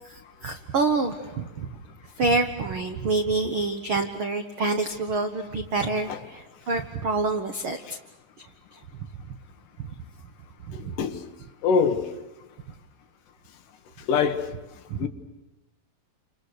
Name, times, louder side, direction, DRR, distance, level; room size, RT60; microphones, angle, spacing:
voice 1, 0.1-1.7 2.2-7.8 10.7-10.9 14.9-15.1, right 3 dB, 75° right, 1.2 m, -27 dB
voice 2, 10.7-11.2 11.6-12.0 14.1-14.5 15.0-15.1, left 6 dB, 70° left, 2.8 m, -23 dB
29.0 x 27.0 x 6.8 m
omnidirectional pair, 4.2 m